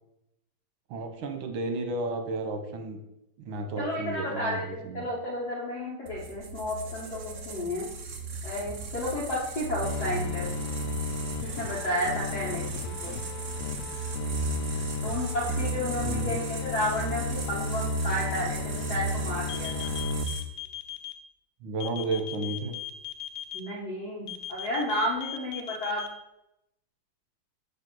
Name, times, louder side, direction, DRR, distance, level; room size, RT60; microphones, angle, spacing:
voice 1, 0.9-3.0 3.4-5.1 16.0-16.4 21.6-22.8, right 2 dB, 80° right, 5 dB, 1.7 m, -33 dB
voice 2, 3.8-7.9 8.4-10.5 11.4-13.2 15.0-19.9 23.5-26.1, left 1 dB, 55° left, -6 dB, 1.7 m, -32 dB
sound 1, 6.1-20.4, right 3 dB, 55° right, 0.9 m, -35 dB
sound 2, 9.8-20.2, left 5 dB, 90° left, 0.8 m, -35 dB
sound 3, 19.5-21.1 21.8-23.6 24.3-26.1, left 13 dB, 70° left, 1.2 m, -37 dB
6.5 x 3.4 x 6.1 m, 0.86 s
omnidirectional pair, 2.2 m